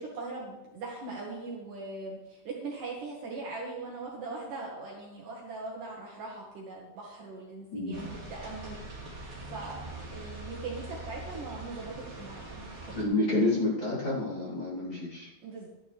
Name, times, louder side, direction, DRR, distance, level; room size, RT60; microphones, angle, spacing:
voice 1, 0.0-8.8 9.5-9.8 10.1-12.5 15.4-15.7, right 3 dB, 60° right, -3 dB, 2.8 m, -40 dB
voice 2, 7.7-8.1 12.9-15.3, left 2 dB, 30° left, -9 dB, 4.1 m, -29 dB
sound 1, 7.9-13.0, right 2 dB, 30° right, 4.2 m, -43 dB
14.5 x 10.5 x 3.4 m, 1.0 s
omnidirectional pair, 4.8 m